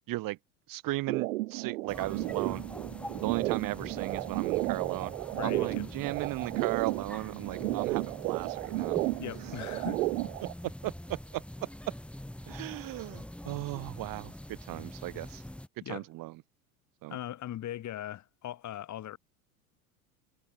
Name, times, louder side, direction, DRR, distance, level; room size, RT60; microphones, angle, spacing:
voice 1, 0.1-0.4 0.7-2.6 3.2-5.1 5.4-9.0 10.6-11.9 12.5-15.4 15.9-16.4 17.0-17.2, right 18 dB, 50° right, 3.0 m, -36 dB
sound 1, 1.1-10.5, right 19 dB, 70° right, 0.9 m, -33 dB
sound 2, 1.9-15.7, left 1 dB, 5° left, 4.6 m, -45 dB
voice 2, 5.4-5.9 9.2-10.0 15.8-16.1 17.1-19.2, left 12 dB, 40° left, 5.0 m, -39 dB
hypercardioid pair, 85°, 44 cm